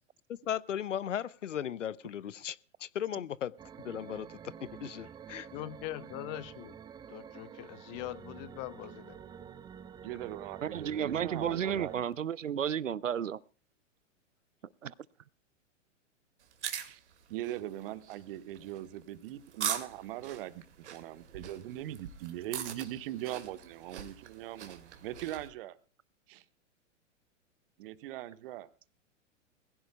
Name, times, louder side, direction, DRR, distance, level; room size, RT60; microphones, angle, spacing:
voice 1, 0.3-3.5 3.8-5.5, left 9 dB, 70° left, 0.8 m, -37 dB
sound 1, 3.6-12.0, right 8 dB, 10° right, 0.6 m, -49 dB
voice 2, 5.5-6.7 7.1-9.2, left 16 dB, 35° left, 1.0 m, -42 dB
voice 3, 10.0-11.9 16.8-17.0 17.3-20.6 20.9-25.8 26.3-26.4 27.8-28.7, right 13 dB, 45° right, 1.3 m, -40 dB
voice 4, 10.6-13.4 14.8-14.9, right 9 dB, 75° right, 0.7 m, -32 dB
sound 2, 16.4-25.5, right 9 dB, 60° right, 2.0 m, -42 dB
22.0 x 16.0 x 2.2 m
figure-of-eight pair, 105°, 38 cm